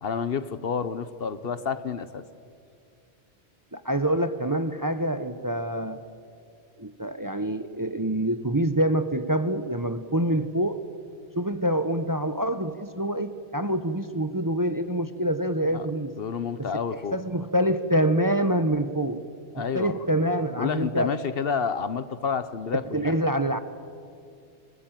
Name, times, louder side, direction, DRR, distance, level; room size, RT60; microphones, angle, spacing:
voice 1, 0.0-2.2 15.7-15.9 16.2-17.2 19.5-20.1 20.6-23.1, left 6 dB, 60° left, 14 dB, 1.1 m, -29 dB
voice 2, 3.7-6.0 6.8-10.8 11.4-16.1 16.6-16.7 16.9-19.2 19.6-21.1 22.9-23.6, right 1 dB, 20° right, 10 dB, 0.8 m, -26 dB
28.5 x 19.5 x 9.0 m, 2.4 s
omnidirectional pair, 1.1 m